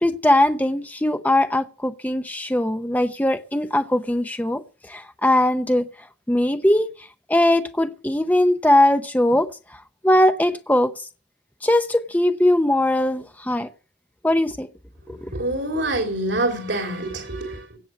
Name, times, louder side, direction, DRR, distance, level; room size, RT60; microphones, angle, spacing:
voice 1, 0.0-4.6 4.9-5.9 6.3-6.9 7.3-9.5 10.0-11.0 11.6-13.7 14.2-14.7 15.2-15.3, left 1 dB, 10° left, 0.7 m, -20 dB
voice 2, 15.1-17.8, right 1 dB, 75° right, 3.0 m, -26 dB
17.0 x 6.8 x 8.4 m
head